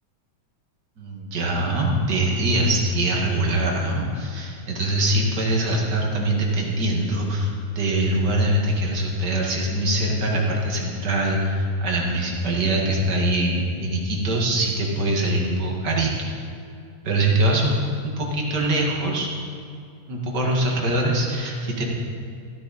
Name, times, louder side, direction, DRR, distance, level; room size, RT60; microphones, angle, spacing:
voice 1, 1.0-16.3 17.0-17.8 18.0-19.3 20.1-21.8, right 1 dB, 40° right, -1 dB, 2.2 m, -23 dB
14.5 x 14.0 x 4.2 m, 2.4 s
omnidirectional pair, 3.4 m